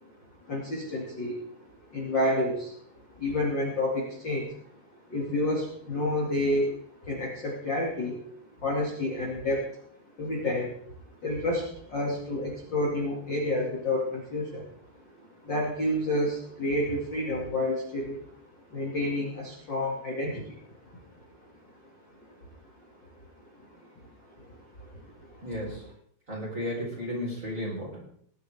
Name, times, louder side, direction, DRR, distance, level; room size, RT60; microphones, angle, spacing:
voice 1, 0.4-1.4 1.9-2.7 3.1-4.6 5.1-6.7 7.0-8.2 8.6-9.8 10.2-10.7 11.2-14.7 15.4-18.4 18.7-21.0 23.5-23.8 24.2-24.9 25.3-25.5, left 1 dB, 35° left, -3 dB, 2.2 m, -30 dB
voice 2, 25.4-25.9 26.3-28.0, left 1 dB, 20° right, -3 dB, 4.1 m, -34 dB
20.5 x 11.0 x 3.6 m, 0.64 s
omnidirectional pair, 5.2 m